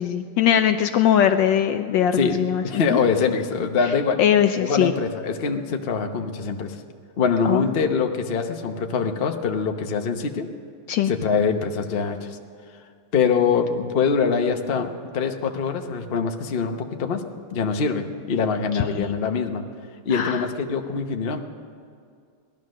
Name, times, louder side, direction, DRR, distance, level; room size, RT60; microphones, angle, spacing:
voice 1, 0.0-3.0 4.2-4.9 7.4-7.7 10.9-11.1 18.8-19.1 20.1-20.4, left 9 dB, 75° left, 8 dB, 1.1 m, -21 dB
voice 2, 2.2-4.2 4.6-6.8 7.2-10.5 11.1-12.4 13.1-17.2 17.5-19.6 20.0-21.4, left 5 dB, 50° left, 4 dB, 0.7 m, -24 dB
18.0 x 12.5 x 6.4 m, 2.3 s
omnidirectional pair, 2.4 m